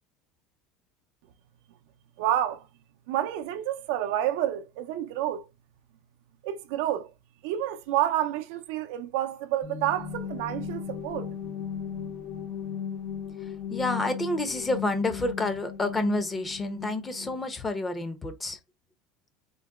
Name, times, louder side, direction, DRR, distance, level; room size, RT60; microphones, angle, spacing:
voice 1, 2.2-2.7 3.1-5.4 6.4-7.1 7.4-11.3, right 12 dB, 75° right, 0.5 m, -29 dB
sound 1, 9.6-17.4, left 7 dB, 45° left, 0.8 m, -36 dB
voice 2, 13.4-18.6, left 2 dB, 15° left, 0.7 m, -29 dB
3.9 x 2.2 x 3.5 m
supercardioid pair, 145°, 0 cm